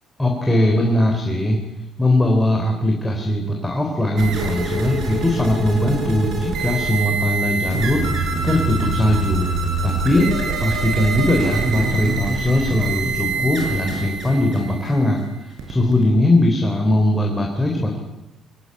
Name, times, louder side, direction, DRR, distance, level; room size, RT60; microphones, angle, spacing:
voice 1, 0.2-1.6 2.0-9.5 9.8-10.3 10.6-18.0, left 1 dB, 5° left, 1 dB, 3.5 m, -20 dB
sound 1, 4.2-16.1, right 3 dB, 55° right, 6.1 m, -25 dB
23.5 x 14.5 x 9.6 m, 0.95 s
cardioid pair, 135°, 0 cm